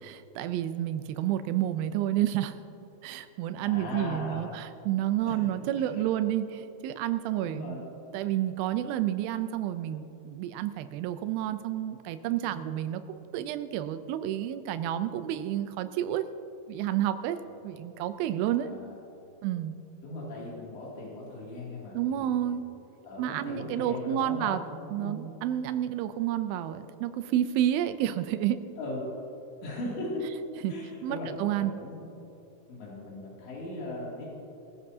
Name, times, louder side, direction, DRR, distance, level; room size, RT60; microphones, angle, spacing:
voice 1, 0.0-2.5 3.0-7.8 8.1-16.2 16.7-17.4 17.6-18.7 19.4-19.7 21.9-22.6 23.2-24.6 24.9-28.6 30.6-30.7 31.0-31.7, right 12 dB, 85° right, 10 dB, 2.1 m, -30 dB
voice 2, 3.6-4.5 5.3-6.1 7.4-7.8 12.4-12.6 17.5-17.6 18.6-19.0 20.0-22.6 23.0-25.2 28.8-29.1 29.6-30.3 30.7-31.3 31.6-32.0 32.7-34.3, left 2 dB, 85° left, -5 dB, 4.9 m, -38 dB
21.0 x 15.0 x 2.8 m, 2.7 s
omnidirectional pair, 4.9 m